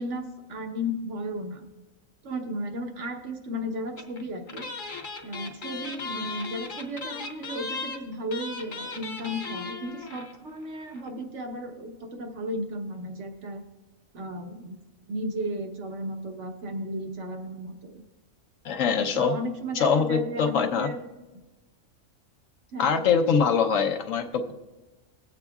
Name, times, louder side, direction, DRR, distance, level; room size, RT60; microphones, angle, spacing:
voice 1, 0.0-1.7 2.2-4.7 5.2-13.6 14.1-14.8 15.1-18.0 19.0-21.0 22.7-23.1, equal, 60° right, 4 dB, 1.4 m, -34 dB
sound 1, 4.0-4.2 4.5-10.4 10.6-10.7 10.9-11.1, left 3 dB, 40° left, 1.0 m, -37 dB
voice 2, 18.6-19.3 19.7-20.9 22.8-24.5, left 6 dB, 70° left, 5 dB, 1.2 m, -23 dB
20.5 x 8.0 x 2.3 m, 1.1 s
omnidirectional pair, 1.4 m